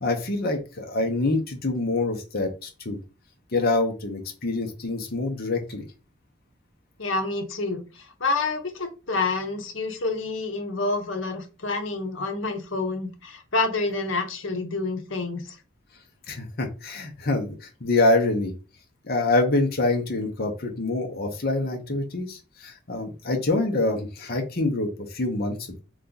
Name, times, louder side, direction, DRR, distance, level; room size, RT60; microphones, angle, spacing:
voice 1, 0.0-3.0 3.5-5.8 16.3-18.5 19.0-25.8, left 2 dB, 50° left, 3 dB, 1.0 m, -26 dB
voice 2, 7.0-15.6, left 3 dB, 75° left, 4 dB, 1.1 m, -28 dB
4.0 x 3.2 x 3.9 m, 0.31 s
head